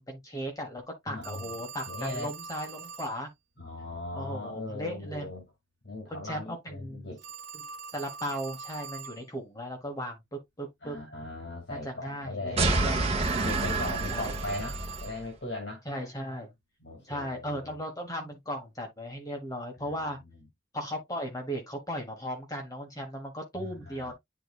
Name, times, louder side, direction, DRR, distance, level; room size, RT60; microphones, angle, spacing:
voice 1, 0.0-3.3 4.1-5.3 6.1-7.1 7.5-7.6 7.9-11.0 11.7-13.0 13.8-14.3 15.8-16.5 17.0-20.2 20.7-24.1, equal, 20° left, 1.4 m, -37 dB
voice 2, 1.1-1.6 1.9-2.3 3.6-5.5 5.8-7.2 10.8-12.7 13.4-15.8 16.8-17.8 19.8-20.4 23.6-24.1, left 2 dB, 65° left, 2.2 m, -39 dB
Telephone, 1.2-3.2 7.2-9.2 13.2-15.2, right 5 dB, 60° right, 1.2 m, -43 dB
sound 1, 12.6-15.1, right 3 dB, 35° right, 1.3 m, -28 dB
10.0 x 3.9 x 2.4 m
head